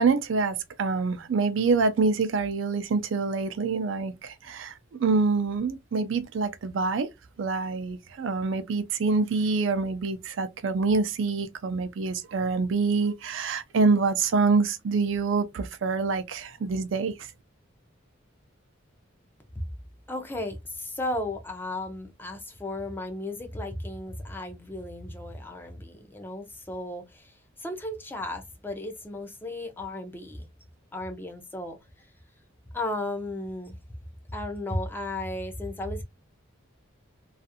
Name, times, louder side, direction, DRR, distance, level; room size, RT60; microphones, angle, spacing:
voice 1, 0.0-7.1 7.4-17.3, right 4 dB, 70° right, 0.4 m, -26 dB
voice 2, 20.1-30.5 30.9-32.1 32.7-33.8 34.3-36.0, left 1 dB, 10° left, 0.5 m, -35 dB
2.4 x 2.4 x 2.6 m
head